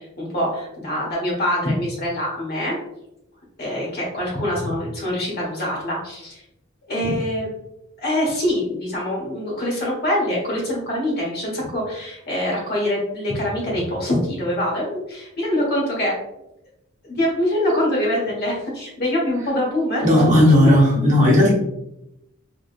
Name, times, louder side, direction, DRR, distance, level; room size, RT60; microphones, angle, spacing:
voice 1, 0.2-2.8 3.6-6.4 6.9-7.5 8.0-16.1 17.1-20.4, left 1 dB, 50° left, -3 dB, 1.3 m, -24 dB
voice 2, 20.0-21.5, left 1 dB, 35° right, -5 dB, 1.1 m, -14 dB
3.6 x 3.1 x 2.4 m, 0.85 s
head